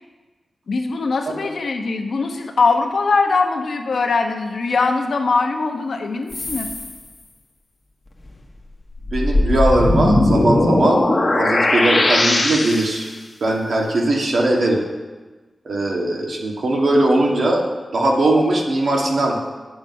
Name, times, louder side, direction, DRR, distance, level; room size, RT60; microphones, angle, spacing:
voice 1, 0.7-6.7, left 4 dB, 80° left, 4 dB, 1.0 m, -21 dB
sound 1, 6.3-6.9 8.3-8.4 9.0-13.1, left 2 dB, 35° left, 1.2 m, -19 dB
voice 2, 9.1-11.1 11.3-13.1 13.4-14.8 15.6-17.6 17.9-19.4, right 1 dB, 75° right, -1 dB, 1.7 m, -19 dB
9.3 x 6.9 x 5.5 m, 1.3 s
wide cardioid pair, 100°, 0 cm